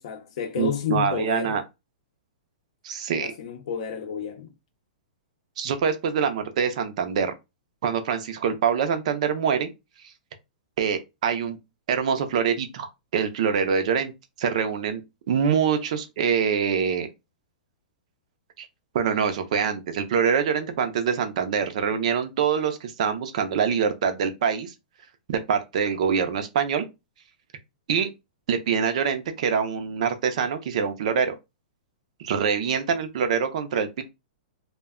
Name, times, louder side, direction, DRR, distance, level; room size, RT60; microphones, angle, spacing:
voice 1, 0.0-1.6 3.1-4.5, left 7 dB, 45° left, 0.6 m, -30 dB
voice 2, 0.6-1.6 2.8-3.3 5.6-7.3 7.8-9.7 10.8-11.6 11.9-14.1 14.4-15.0 15.3-17.1 18.6-18.7 18.9-24.7 25.3-26.8 27.9-28.1 28.5-31.3 32.2-34.0, right 7 dB, 50° right, 0.5 m, -25 dB
2.2 x 2.1 x 3.5 m
hypercardioid pair, 170°, 5 cm